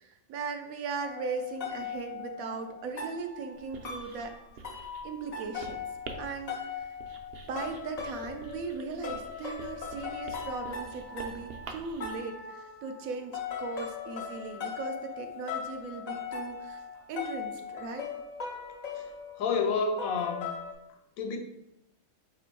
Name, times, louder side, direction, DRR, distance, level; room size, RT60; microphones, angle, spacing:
voice 1, 0.0-4.4 5.0-5.8 6.2-6.9 7.5-16.8 17.1-18.1, right 4 dB, 85° right, 6 dB, 1.1 m, -38 dB
sound 1, 1.0-20.7, left 6 dB, 60° left, 0.4 m, -40 dB
Writing, 3.5-12.2, right 4 dB, 60° right, 0.7 m, -48 dB
voice 2, 19.4-20.4 21.2-21.4, left 5 dB, 80° left, 4 dB, 1.1 m, -29 dB
4.4 x 2.5 x 4.5 m, 0.82 s
omnidirectional pair, 1.4 m